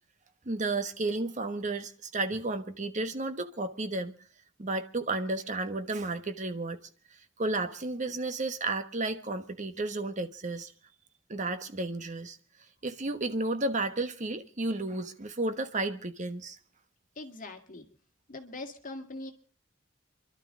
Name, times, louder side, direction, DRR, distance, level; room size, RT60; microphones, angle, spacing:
voice 1, 0.4-4.2 4.6-6.8 7.4-10.7 11.3-12.4 12.8-16.6, right 2 dB, 40° right, 1.2 m, -32 dB
voice 2, 17.2-17.9 18.3-19.3, left 2 dB, 45° left, 2.0 m, -41 dB
29.5 x 12.0 x 3.7 m
head